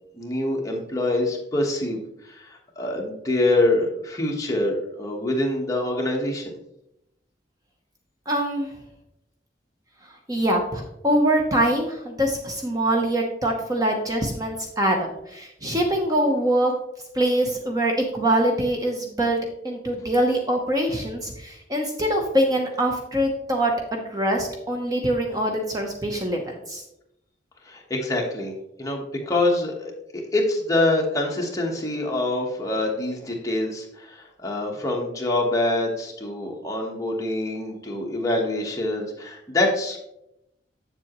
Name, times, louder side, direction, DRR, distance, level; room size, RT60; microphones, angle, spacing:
voice 1, 0.2-2.0 2.3-2.5 2.8-6.6 27.7-28.5 28.8-40.0, left 2 dB, 20° left, -1 dB, 1.3 m, -25 dB
voice 2, 8.3-8.7 10.3-16.7 17.1-19.4 19.6-26.8, right 1 dB, 20° right, 2 dB, 0.8 m, -24 dB
7.7 x 7.4 x 3.0 m, 0.82 s
head